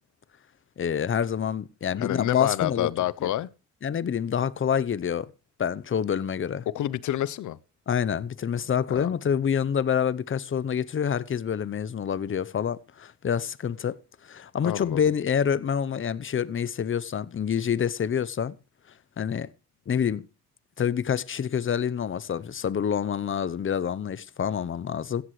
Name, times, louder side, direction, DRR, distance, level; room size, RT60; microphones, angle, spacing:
voice 1, 0.8-2.9 3.2-3.3 3.8-5.3 5.6-6.7 7.9-14.0 14.2-18.6 19.2-19.5 19.9-20.3 20.8-25.2, left 8 dB, 40° left, 0.9 m, -27 dB
voice 2, 2.0-3.5 6.7-7.6 8.9-9.1 14.6-15.0, left 13 dB, 70° left, 0.9 m, -28 dB
16.0 x 14.5 x 3.3 m
supercardioid pair, 70°, 32 cm